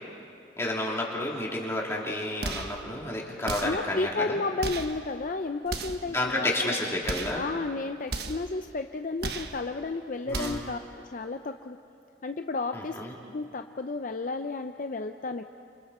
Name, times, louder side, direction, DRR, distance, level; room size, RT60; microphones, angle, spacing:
voice 1, 0.6-4.4 6.1-7.4 10.3-10.6 12.7-13.1, left 1 dB, 15° left, -3 dB, 3.3 m, -30 dB
sound 1, 2.4-2.8 3.5-3.9 4.6-5.0 5.7-6.1 7.0-7.4 8.1-8.5 9.2-9.6 10.3-10.7, right 3 dB, 60° right, 1.3 m, -34 dB
voice 2, 3.6-6.2 6.4-6.8 7.3-10.8 11.0-11.8 12.2-13.0 13.3-15.4, left 3 dB, 45° left, 6 dB, 0.6 m, -32 dB
30.0 x 27.5 x 4.4 m, 2.5 s
head